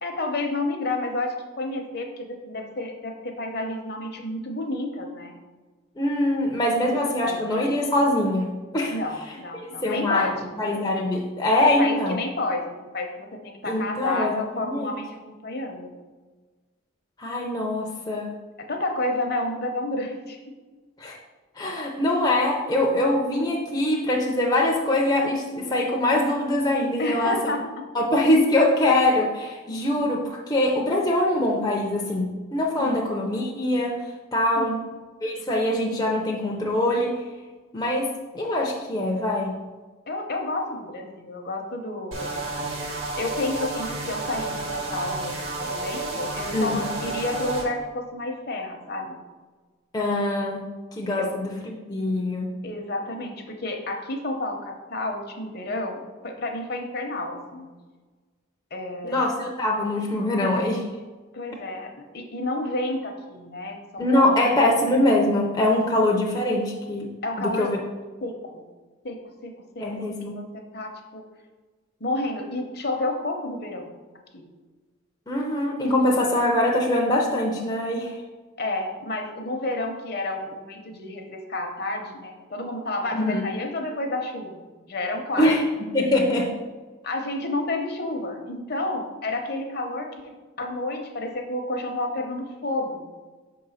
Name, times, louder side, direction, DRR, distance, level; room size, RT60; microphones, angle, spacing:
voice 1, 0.0-5.3 6.8-6.9 7.2-7.5 8.9-10.5 11.6-15.9 18.7-20.4 27.0-27.6 32.8-33.0 34.6-34.8 40.1-42.3 43.2-49.2 51.1-51.3 52.6-57.7 58.7-59.2 61.3-64.8 67.2-67.7 68.2-68.6 69.0-69.2 69.4-71.2 72.0-73.9 74.3-74.4 78.6-85.5 87.0-93.0, left 2 dB, 50° left, 3 dB, 0.8 m, -30 dB
voice 2, 6.0-9.0 9.8-10.3 10.6-12.2 13.7-14.9 17.2-18.4 21.0-21.2 21.6-27.4 27.9-34.0 34.3-34.8 35.2-37.2 37.7-39.6 46.5-46.9 49.9-51.5 51.9-52.5 59.0-60.8 64.0-67.1 67.4-67.8 69.8-70.4 75.3-78.1 83.1-83.4 85.4-85.6 85.9-86.6, left 1 dB, 20° left, -2 dB, 0.6 m, -23 dB
sound 1, 42.1-47.6, right 2 dB, 80° right, 2.1 m, -31 dB
5.5 x 3.8 x 5.6 m, 1.3 s
head